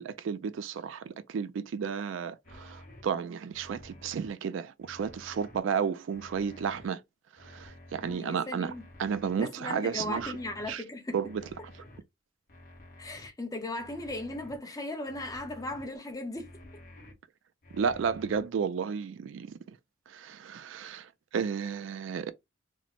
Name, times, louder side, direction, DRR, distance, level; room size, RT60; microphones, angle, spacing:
voice 1, 0.0-7.0 7.4-8.7 9.0-10.4 10.7-10.8 11.1-11.4 17.7-19.8 20.1-22.3, right 6 dB, 70° right, 0.3 m, -32 dB
sound 1, 2.4-3.0 3.5-4.3 4.8-5.6 6.1-6.9 7.4-8.1 8.6-9.4 9.9-10.7 11.2-12.0 12.5-13.3 13.8-14.6 15.1-15.8 16.3-17.1 17.6-18.4, left 1 dB, 45° left, 0.9 m, -51 dB
voice 2, 8.0-8.8 9.4-11.2 13.0-16.5, left 1 dB, 20° left, 0.7 m, -37 dB
3.0 x 2.0 x 3.7 m
head